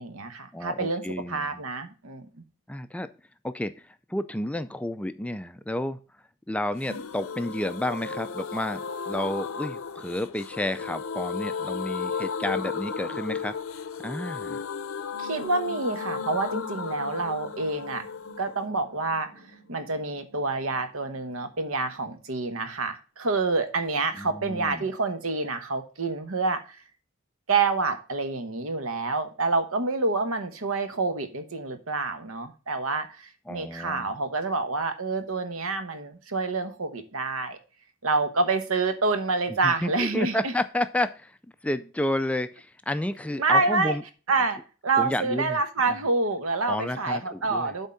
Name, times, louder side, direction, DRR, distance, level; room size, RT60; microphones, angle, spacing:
voice 1, 0.0-2.3 15.2-18.0 18.4-26.8 27.5-37.6 38.0-40.5 43.4-44.0 44.3-44.6 44.8-47.9, right 3 dB, 75° right, 1.1 m, -27 dB
voice 2, 0.5-1.6 2.7-3.1 3.4-6.0 6.5-13.6 14.0-14.6 24.2-24.9 33.5-34.2 39.6-41.4 41.6-44.0 45.0-45.6 45.9-46.0 46.7-47.7, left 1 dB, 5° left, 0.3 m, -31 dB
sound 1, 6.8-20.4 20.7-20.8 21.0-21.1, left 5 dB, 70° left, 0.7 m, -35 dB
8.0 x 3.7 x 5.5 m
head